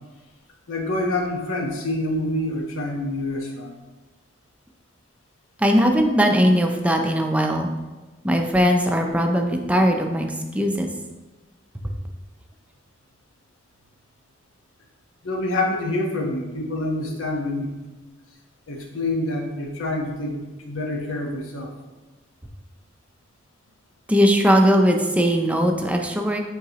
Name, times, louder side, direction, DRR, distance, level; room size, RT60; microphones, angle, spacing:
voice 1, 0.7-3.7 15.2-17.8 18.7-21.7, left 1 dB, 80° left, 1 dB, 1.0 m, -27 dB
voice 2, 5.6-7.7 8.2-10.9 11.8-11.9 24.1-26.4, equal, 5° right, 3 dB, 0.5 m, -19 dB
8.5 x 3.8 x 2.9 m, 1.2 s
head